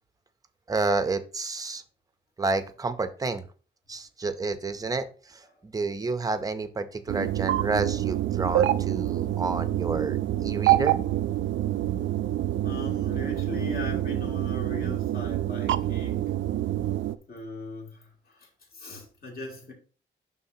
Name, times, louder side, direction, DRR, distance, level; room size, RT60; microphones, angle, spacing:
voice 1, 0.7-1.8 2.4-3.4 3.9-11.0, right 3 dB, 20° right, 0.6 m, -30 dB
sound 1, 7.1-17.2, right 13 dB, 75° right, 0.4 m, -27 dB
voice 2, 12.6-16.2 17.3-19.7, left 3 dB, 50° left, 2.5 m, -39 dB
11.5 x 3.8 x 2.7 m
wide cardioid pair, 155°, 20 cm